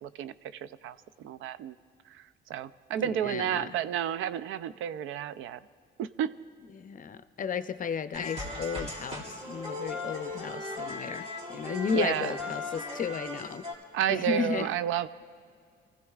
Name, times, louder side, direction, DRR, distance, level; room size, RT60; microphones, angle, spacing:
voice 1, 0.0-1.7 2.1-5.6 6.0-6.3 11.9-12.4 13.9-15.1, right 10 dB, 85° right, 14 dB, 0.5 m, -31 dB
voice 2, 3.0-3.7 6.7-13.7 14.1-14.7, left 6 dB, 45° left, 12 dB, 0.6 m, -34 dB
sound 1, 8.1-13.7, left 2 dB, 35° right, 2.9 m, -38 dB
26.0 x 15.0 x 2.4 m, 2.2 s
cardioid pair, 90°, 20 cm